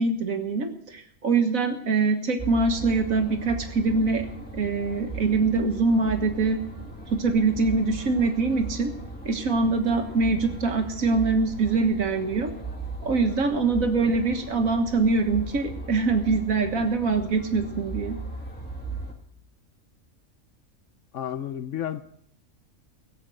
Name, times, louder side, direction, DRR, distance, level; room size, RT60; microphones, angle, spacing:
voice 1, 0.0-4.3 4.5-6.6 7.1-8.9 9.2-12.5 13.0-18.2, right 3 dB, 65° right, 6 dB, 1.8 m, -24 dB
sound 1, 2.4-19.1, right 3 dB, 5° left, 2.2 m, -38 dB
voice 2, 13.8-14.1 21.1-22.0, left 10 dB, 60° left, 12 dB, 0.9 m, -32 dB
16.5 x 7.5 x 7.7 m, 0.68 s
omnidirectional pair, 1.6 m